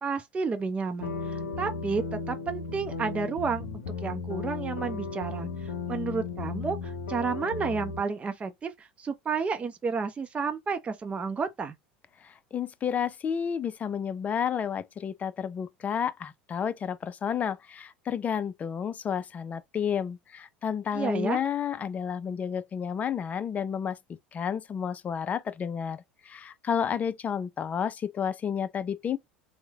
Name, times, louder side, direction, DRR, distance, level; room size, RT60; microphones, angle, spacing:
voice 1, 0.0-3.7 4.0-11.7 20.9-21.4, right 5 dB, 25° right, 0.6 m, -31 dB
sound 1, 1.0-8.0, left 4 dB, 75° left, 0.6 m, -35 dB
voice 2, 12.2-24.0 24.3-29.2, left 8 dB, 30° left, 0.4 m, -31 dB
3.0 x 2.1 x 3.5 m
hypercardioid pair, 70°, 5 cm